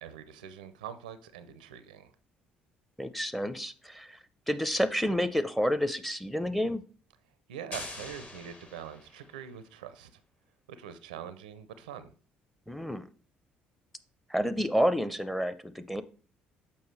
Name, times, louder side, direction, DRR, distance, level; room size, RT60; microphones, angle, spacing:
voice 1, 0.0-2.1 7.5-10.1 10.7-12.1, right 9 dB, 85° right, 0.5 m, -44 dB
voice 2, 3.0-4.2 4.5-6.8 12.7-13.1 14.3-16.0, equal, ahead, 0.6 m, -29 dB
sound 1, 7.7-9.5, left 2 dB, 30° left, 1.3 m, -44 dB
6.9 x 5.3 x 3.2 m
hypercardioid pair, 55°, 4 cm